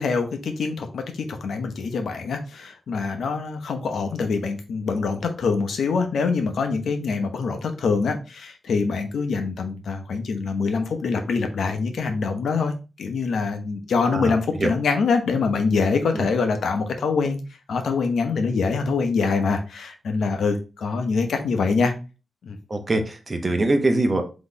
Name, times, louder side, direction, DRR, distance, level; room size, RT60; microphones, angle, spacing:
voice 1, 0.0-12.7 13.0-17.4 17.7-21.9 22.4-22.6, left 4 dB, 85° left, 6 dB, 0.8 m, -24 dB
voice 2, 14.1-14.7 16.1-16.3 22.7-24.2, right 2 dB, 30° right, 6 dB, 0.8 m, -23 dB
3.9 x 3.0 x 3.9 m, 0.31 s
wide cardioid pair, 115°, 0 cm